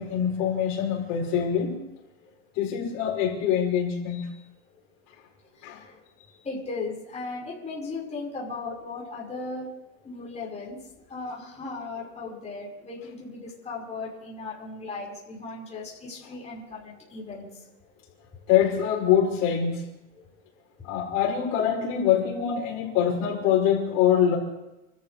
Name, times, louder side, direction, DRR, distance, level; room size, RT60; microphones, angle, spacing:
voice 1, 0.0-1.8 2.6-4.3 5.6-5.8 18.5-19.8 20.8-24.4, left 9 dB, 55° left, -2 dB, 5.7 m, -24 dB
voice 2, 5.6-6.0 6.4-9.7 10.0-10.8 11.1-17.6 18.3-18.4 20.2-20.5 20.8-20.9, left 3 dB, 20° left, -4 dB, 5.6 m, -37 dB
30.0 x 14.0 x 3.5 m, 0.97 s
supercardioid pair, 125°, 38 cm